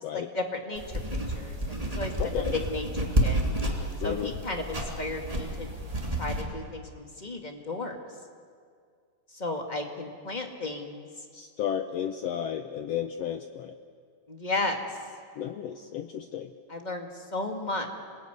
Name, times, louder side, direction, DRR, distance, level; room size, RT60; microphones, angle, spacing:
voice 1, 0.1-3.4 4.0-5.7 6.2-8.0 9.3-11.1 14.3-14.8 16.7-17.9, left 2 dB, 20° left, 4 dB, 1.4 m, -34 dB
sound 1, 0.7-6.4, equal, 10° right, 2.6 m, -30 dB
voice 2, 2.2-2.5 4.0-4.3 11.3-13.8 15.4-16.5, left 9 dB, 85° left, 8 dB, 1.4 m, -33 dB
27.0 x 20.0 x 9.5 m, 2.1 s
omnidirectional pair, 3.9 m